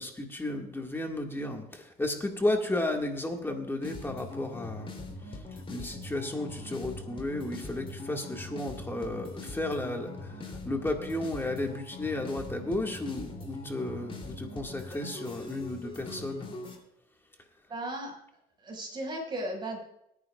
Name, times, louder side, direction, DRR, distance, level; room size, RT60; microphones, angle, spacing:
voice 1, 0.0-4.9 5.7-16.5, left 2 dB, 15° left, 2 dB, 1.9 m, -33 dB
sound 1, 3.8-16.8, left 2 dB, 30° left, 3.2 m, -42 dB
voice 2, 17.7-18.1 18.6-19.8, right 1 dB, 25° right, 0 dB, 5.5 m, -35 dB
23.5 x 9.8 x 2.4 m, 0.78 s
cardioid pair, 110°, 17 cm